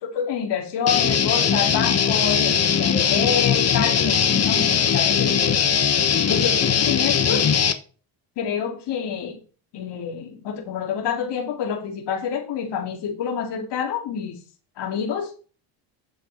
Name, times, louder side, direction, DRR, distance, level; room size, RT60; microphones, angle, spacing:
voice 1, 0.0-5.6 6.3-7.4 8.4-9.4 9.7-14.4 14.8-15.4, left 7 dB, 65° left, 1 dB, 2.4 m, -27 dB
Guitar, 0.9-7.7, left 7 dB, 35° left, 1.1 m, -20 dB
10.5 x 5.9 x 3.9 m, 0.39 s
supercardioid pair, 85°, 44 cm